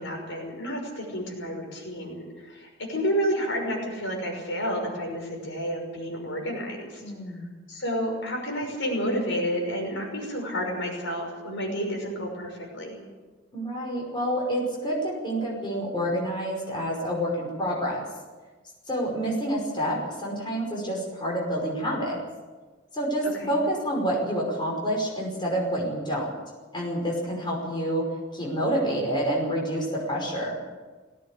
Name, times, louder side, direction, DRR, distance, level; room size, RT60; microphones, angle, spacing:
voice 1, 0.0-7.0 7.7-13.0 23.4-23.5, equal, 65° left, 1 dB, 5.8 m, -30 dB
voice 2, 7.0-7.5 13.5-18.1 18.9-22.2 22.9-26.3 26.7-28.0 28.3-30.6, equal, 25° left, -2 dB, 5.5 m, -28 dB
18.5 x 17.0 x 8.5 m, 1.3 s
head